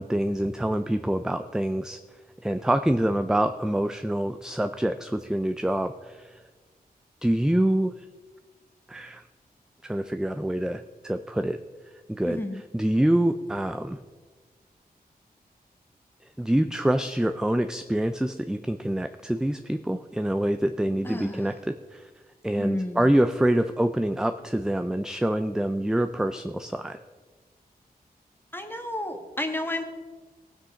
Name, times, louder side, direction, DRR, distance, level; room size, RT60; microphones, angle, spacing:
voice 1, 0.0-2.0 2.4-6.4 7.2-7.9 8.9-9.2 9.8-11.6 12.1-12.4 12.7-14.0 16.4-22.1 22.4-27.0, right 1 dB, 5° right, 9 dB, 0.4 m, -26 dB
voice 2, 12.2-12.6 21.0-21.5 22.6-23.0 28.5-29.8, left 1 dB, 15° left, 5 dB, 1.5 m, -31 dB
17.5 x 6.4 x 5.6 m, 1.3 s
wide cardioid pair, 95°, 16 cm